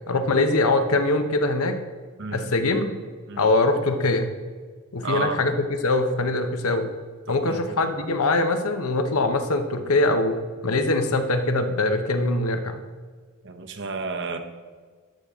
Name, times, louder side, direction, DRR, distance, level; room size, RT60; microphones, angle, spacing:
voice 1, 0.1-1.8 2.3-2.9 3.4-4.3 4.9-6.9 7.3-12.8, left 2 dB, 90° left, 7 dB, 0.9 m, -23 dB
voice 2, 2.2-2.5 3.3-3.5 5.0-5.4 7.3-8.1 13.4-14.4, right 4 dB, 55° right, 7 dB, 0.8 m, -32 dB
11.5 x 7.0 x 3.7 m, 1.6 s
head